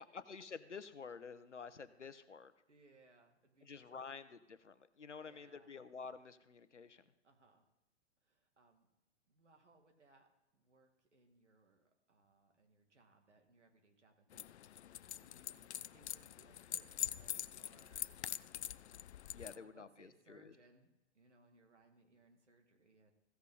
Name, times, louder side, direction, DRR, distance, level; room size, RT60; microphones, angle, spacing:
voice 1, 0.1-2.5 3.6-7.0 19.3-20.5, left 5 dB, 85° left, 13 dB, 0.9 m, -50 dB
voice 2, 2.7-4.0 5.1-5.7 7.2-7.7 8.2-8.9 9.3-18.1 19.1-20.9 21.1-23.1, right 3 dB, 80° right, 3 dB, 2.3 m, -68 dB
sound 1, 14.3-19.6, left 10 dB, 70° left, 0.5 m, -44 dB
15.5 x 8.1 x 3.9 m, 0.95 s
figure-of-eight pair, 115°, 35 cm